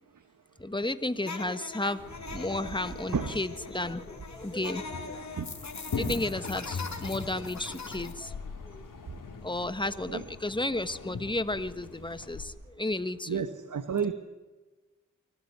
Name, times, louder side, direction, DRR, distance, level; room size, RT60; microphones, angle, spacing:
voice 1, 0.6-5.3 6.0-8.4 8.6-8.8 9.4-13.5 13.9-14.1, left 2 dB, 15° left, 12 dB, 1.5 m, -33 dB
sound 1, 1.2-8.1, left 4 dB, 60° left, 2.8 m, -42 dB
sound 2, 2.0-12.4, left 4 dB, 80° left, 3.5 m, -41 dB
voice 2, 13.3-14.1, right 7 dB, 70° right, 10 dB, 1.4 m, -30 dB
24.0 x 15.0 x 9.5 m, 1.2 s
cardioid pair, 45°, 32 cm